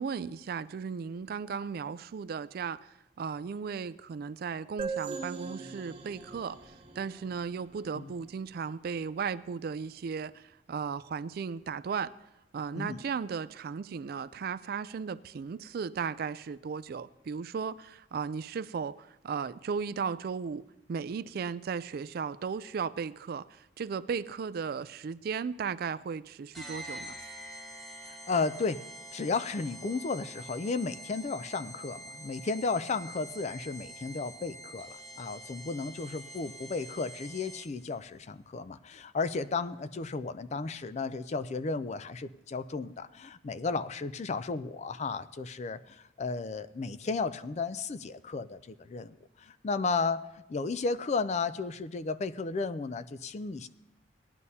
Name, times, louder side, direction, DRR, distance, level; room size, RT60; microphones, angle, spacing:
voice 1, 0.0-2.8 3.2-6.6 7.0-10.4 10.7-12.1 12.5-23.5 23.8-27.2, right 6 dB, 55° right, 0.3 m, -35 dB
sound 1, 4.8-8.3, right 5 dB, 30° right, 1.0 m, -41 dB
sound 2, 26.5-37.9, right 1 dB, ahead, 1.3 m, -46 dB
voice 2, 28.1-28.8 29.1-53.7, left 4 dB, 40° left, 0.4 m, -34 dB
18.0 x 11.0 x 2.8 m
head